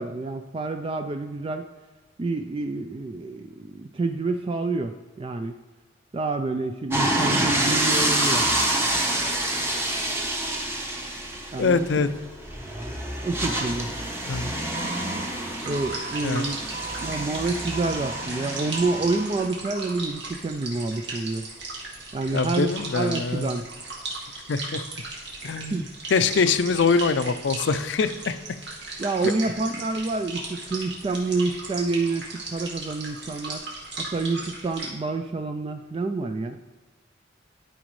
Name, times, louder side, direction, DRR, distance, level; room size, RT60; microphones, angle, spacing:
voice 1, 0.0-1.6 2.2-5.6 6.1-8.5 11.5-11.8 13.2-13.9 15.6-16.7 17.0-21.5 22.1-23.7 25.4-25.8 29.0-33.6 34.0-36.6, right 3 dB, 30° right, 7 dB, 0.3 m, -28 dB
sound 1, 6.9-19.5, right 1 dB, 15° right, 0.9 m, -27 dB
voice 2, 11.6-12.1 14.3-14.5 16.2-16.5 22.3-23.5 24.5-24.8 25.4-28.4, left 4 dB, 70° left, 12 dB, 0.5 m, -24 dB
Alarm, 14.7-15.2 15.7-16.2 16.7-17.2 17.7-18.2 18.7-19.2, right 5 dB, 45° right, 1.3 m, -37 dB
sound 2, 15.5-34.9, right 2 dB, 65° right, 2.0 m, -37 dB
12.5 x 5.1 x 3.1 m, 1.3 s
head